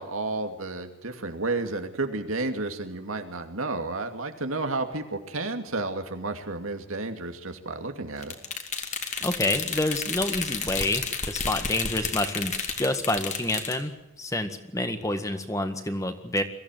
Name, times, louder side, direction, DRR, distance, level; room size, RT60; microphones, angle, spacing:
voice 1, 0.0-8.4, right 3 dB, 90° right, 6 dB, 2.6 m, -31 dB
sound 1, 8.2-13.8, left 5 dB, 35° left, 2.3 m, -31 dB
voice 2, 9.2-16.4, left 1 dB, 15° left, 8 dB, 1.7 m, -28 dB
23.0 x 15.5 x 9.2 m, 0.92 s
head